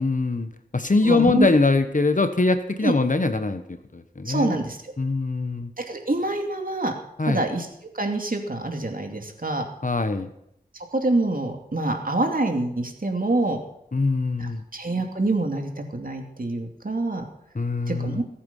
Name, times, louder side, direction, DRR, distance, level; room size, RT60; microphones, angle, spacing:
voice 1, 0.0-4.6 5.0-5.7 7.2-7.4 9.8-10.3 13.9-14.6 17.5-18.2, left 3 dB, 50° left, 9 dB, 1.2 m, -23 dB
voice 2, 1.0-1.5 2.8-2.9 4.2-4.9 5.8-6.9 7.3-7.7 7.9-9.7 10.7-13.6 14.4-17.3 17.9-18.2, right 2 dB, 60° right, 3 dB, 2.6 m, -26 dB
21.0 x 8.6 x 5.5 m, 0.78 s
wide cardioid pair, 45°, 17 cm